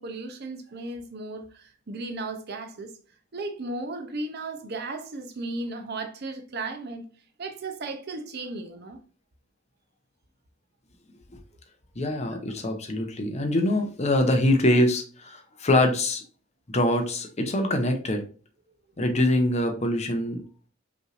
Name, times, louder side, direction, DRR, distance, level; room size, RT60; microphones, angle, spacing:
voice 1, 0.0-2.9 3.3-7.1 7.4-9.0 12.3-12.4, right 2 dB, 55° right, 0.7 m, -35 dB
voice 2, 12.0-16.2 16.7-18.2 19.0-20.4, left 1 dB, 35° left, 0.7 m, -24 dB
5.3 x 3.2 x 2.5 m
head